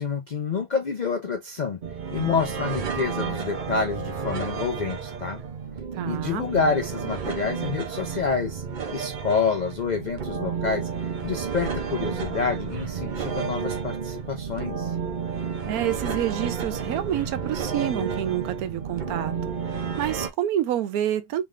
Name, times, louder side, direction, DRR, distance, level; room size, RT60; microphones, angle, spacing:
voice 1, 0.0-1.8 2.1-5.4 6.0-8.6 8.9-10.9 11.2-14.9, left 5 dB, 75° left, 0.4 m, -28 dB
sound 1, 1.8-20.3, right 6 dB, 50° right, 0.6 m, -31 dB
voice 2, 5.9-6.5 15.7-21.4, right 11 dB, 80° right, 1.1 m, -28 dB
3.6 x 3.2 x 3.2 m
omnidirectional pair, 1.6 m